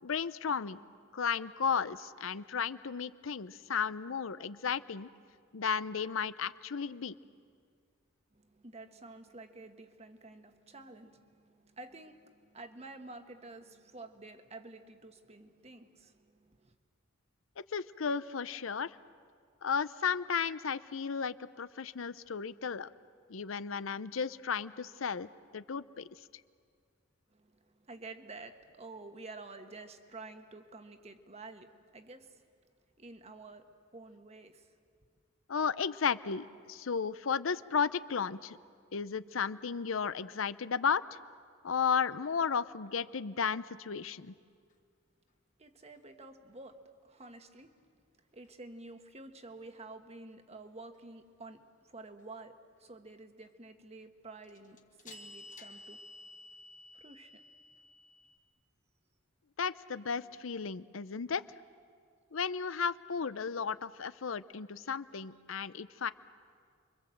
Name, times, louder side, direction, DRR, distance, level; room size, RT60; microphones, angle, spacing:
voice 1, 0.0-0.8 1.1-5.1 5.5-7.2 17.6-19.0 19.6-22.9 23.3-25.3 25.5-26.1 35.5-38.6 38.9-41.0 41.6-44.3 59.6-61.4 62.3-66.1, left 6 dB, 85° left, 15 dB, 0.7 m, -34 dB
voice 2, 8.3-16.7 27.3-32.4 33.0-34.7 45.6-47.8 48.3-56.0 56.9-57.4, right 3 dB, 30° right, 7 dB, 1.3 m, -50 dB
sound 1, 44.1-44.2 54.4-58.4, left 2 dB, 40° left, 1.7 m, -52 dB
29.5 x 24.0 x 7.7 m, 2.1 s
head